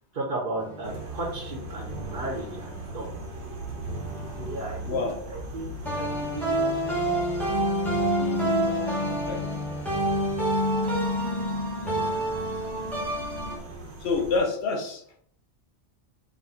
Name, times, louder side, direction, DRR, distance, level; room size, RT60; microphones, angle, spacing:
voice 1, 0.0-3.1 4.4-6.8 8.2-9.5, right 2 dB, 55° right, -2 dB, 1.0 m, -36 dB
sound 1, 0.6-3.2 3.9-5.4 5.9-13.6, equal, ahead, 1.3 m, -28 dB
sound 2, 0.8-14.4, right 1 dB, 80° right, 1.1 m, -40 dB
voice 2, 14.0-15.0, left 3 dB, 70° left, 1 dB, 1.0 m, -26 dB
4.1 x 2.9 x 4.0 m, 0.63 s
omnidirectional pair, 1.1 m